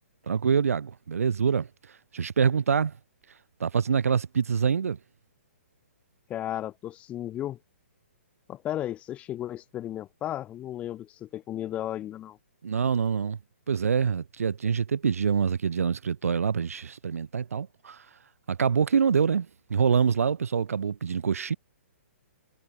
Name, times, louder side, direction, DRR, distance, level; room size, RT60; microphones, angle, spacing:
voice 1, 0.3-1.7 2.1-2.9 3.6-5.0 12.6-13.4 13.7-18.0 18.5-21.6, right 6 dB, 90° right, 1.0 m, -25 dB
voice 2, 6.3-7.6 8.5-12.4, left 12 dB, 15° left, 2.2 m, -34 dB
hypercardioid pair, 160°, 8 cm